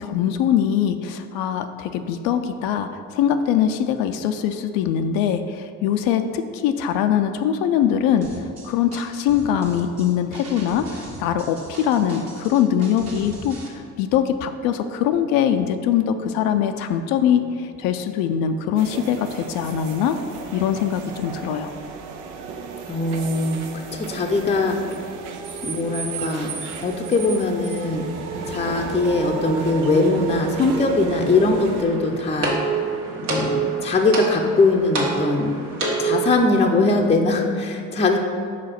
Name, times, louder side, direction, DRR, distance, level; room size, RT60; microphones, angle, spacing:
voice 1, 0.0-8.3 8.6-20.2 20.5-21.7, left 9 dB, 75° left, 8 dB, 0.5 m, -22 dB
sound 1, 8.2-13.7, right 2 dB, 45° right, 1.6 m, -40 dB
sound 2, 18.8-31.8, right 5 dB, 80° right, 0.7 m, -32 dB
voice 2, 22.9-24.8 25.6-28.1 28.4-32.9 33.3-35.6 36.0-38.2, left 3 dB, 20° left, 2 dB, 0.6 m, -21 dB
sound 3, 31.8-36.4, right 4 dB, 65° right, 1.5 m, -26 dB
5.0 x 4.0 x 5.8 m, 2.3 s
hypercardioid pair, 70°, 35 cm